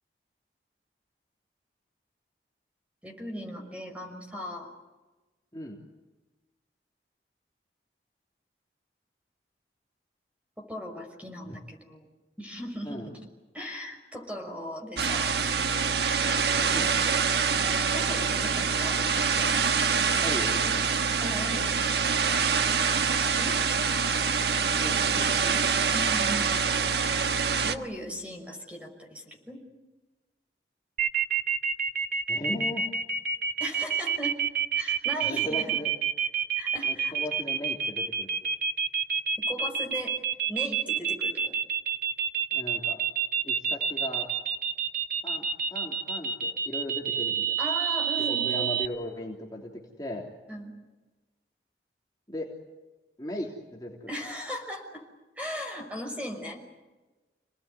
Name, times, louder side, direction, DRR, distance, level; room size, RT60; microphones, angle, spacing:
voice 1, 3.0-4.7 10.6-12.1 12.4-13.2 13.5-15.5 16.2-16.6 17.9-19.1 21.2-21.8 23.2-23.6 25.9-26.5 27.6-29.6 33.6-34.4 34.8-35.7 36.5-37.1 39.5-40.1 40.5-41.6 47.6-48.5 50.5-50.7 54.1-55.0 55.4-56.6, equal, 10° right, 3 dB, 5.8 m, -38 dB
sound 1, 15.0-27.8, right 6 dB, 70° right, 1.4 m, -25 dB
voice 2, 20.2-20.9 24.8-25.6 32.3-32.9 35.3-35.9 36.8-38.3 42.5-43.0 43.4-44.3 45.2-45.4 45.7-47.5 48.3-49.7 50.0-50.3 52.3-52.5 53.2-54.1, left 1 dB, 20° left, -1 dB, 3.1 m, -37 dB
sound 2, 31.0-48.9, right 7 dB, 50° right, 1.8 m, -28 dB
29.0 x 19.5 x 9.6 m, 1.2 s
head